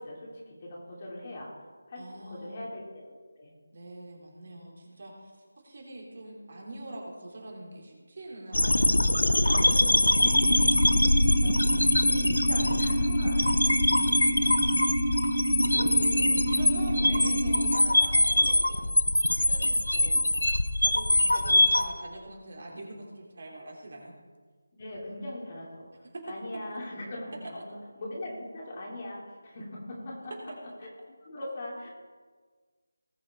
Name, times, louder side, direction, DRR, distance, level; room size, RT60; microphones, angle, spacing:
voice 1, 0.0-1.6 1.9-3.5 11.4-14.2 24.8-30.3 30.8-30.9 31.2-31.9, left 1 dB, 35° left, -4 dB, 3.3 m, -41 dB
voice 2, 1.9-2.6 3.7-5.3 5.6-8.9 9.4-11.2 12.7-12.9 14.3-19.0 19.5-19.6 19.9-20.4 20.8-24.1 26.1-26.2, right 1 dB, 50° right, -2 dB, 3.4 m, -43 dB
sound 1, 8.5-21.8, left 1 dB, 80° left, 1.0 m, -23 dB
sound 2, 10.2-17.8, equal, 10° right, 3.1 m, -29 dB
19.0 x 6.5 x 4.5 m, 1.5 s
figure-of-eight pair, 165°, 0 cm